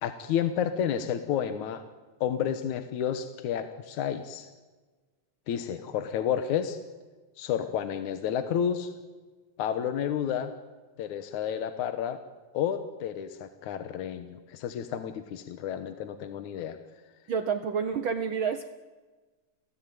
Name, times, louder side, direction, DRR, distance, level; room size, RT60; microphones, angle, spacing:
voice 1, 0.0-1.8 2.2-4.5 5.5-6.8 7.4-8.9 9.6-10.5 11.0-12.2 12.5-16.8, left 9 dB, 80° left, 8 dB, 2.6 m, -31 dB
voice 2, 17.3-18.7, right 6 dB, 65° right, 9 dB, 1.2 m, -29 dB
29.5 x 17.5 x 9.3 m, 1.3 s
omnidirectional pair, 3.4 m